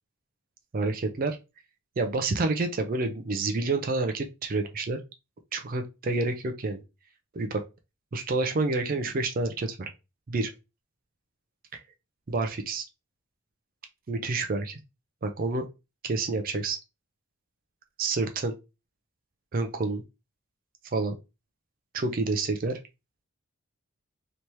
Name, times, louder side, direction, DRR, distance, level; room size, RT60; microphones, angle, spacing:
voice 1, 0.7-1.4 2.0-5.0 5.5-6.8 7.3-7.6 8.1-9.9 10.3-10.5 11.7-11.8 12.3-12.9 14.1-14.8 15.2-15.7 16.0-16.8 18.0-18.6 19.5-20.0 20.9-21.2 21.9-22.8, right 3 dB, 40° right, 0.4 m, -28 dB
3.3 x 3.0 x 2.8 m
head